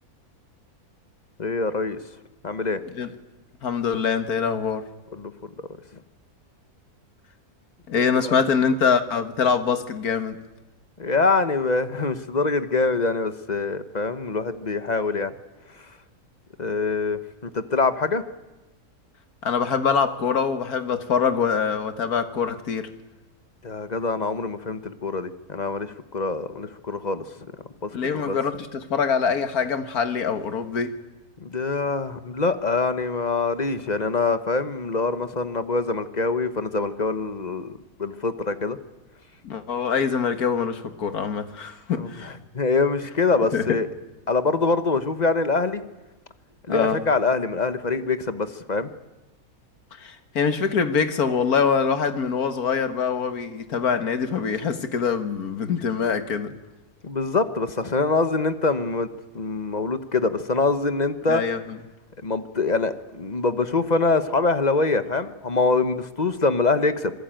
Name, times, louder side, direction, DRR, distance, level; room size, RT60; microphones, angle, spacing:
voice 1, 1.4-2.0 2.4-2.8 5.1-5.3 8.2-8.3 11.0-15.3 16.6-18.2 23.6-27.2 27.8-27.9 28.3-28.4 31.4-38.8 42.0-42.1 42.5-43.9 44.3-45.8 46.7-48.9 57.0-59.1 59.3-61.4 62.2-67.1, left 3 dB, 30° left, 1.2 m, -24 dB
voice 2, 3.6-4.9 7.9-10.4 19.4-22.9 27.9-31.0 39.4-42.3 43.5-43.8 46.7-47.0 50.0-56.5 61.3-61.8, left 6 dB, 75° left, 2.0 m, -24 dB
26.0 x 21.0 x 9.1 m
omnidirectional pair, 1.6 m